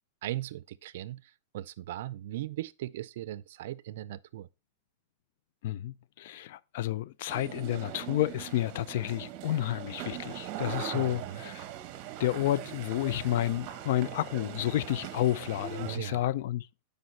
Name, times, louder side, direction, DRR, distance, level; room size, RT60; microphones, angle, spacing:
voice 1, 0.2-4.5 10.9-11.4 15.8-16.2, right 14 dB, 70° right, 0.4 m, -38 dB
voice 2, 5.6-11.6 12.2-16.7, left 13 dB, 65° left, 0.4 m, -30 dB
sound 1, 7.3-16.0, right 12 dB, 45° right, 0.9 m, -41 dB
7.9 x 5.2 x 4.0 m
supercardioid pair, 140°, 0 cm